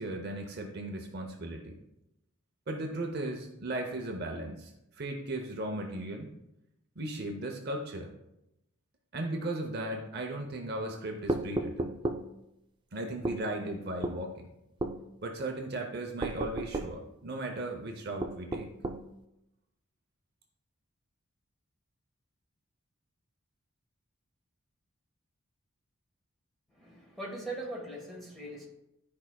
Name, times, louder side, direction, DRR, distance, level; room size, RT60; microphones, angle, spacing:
voice 1, 0.0-1.8 2.7-6.3 7.0-8.1 9.1-12.0 12.9-14.5 15.2-18.7, right 1 dB, 45° right, 2 dB, 0.7 m, -36 dB
sound 1, 11.3-12.2 13.2-13.4 14.0-14.2 14.8-15.0 16.2-16.9 18.2-19.0, right 2 dB, 20° right, 0.3 m, -33 dB
voice 2, 26.7-28.6, right 1 dB, ahead, -3 dB, 1.4 m, -40 dB
12.5 x 4.7 x 2.3 m, 0.88 s
head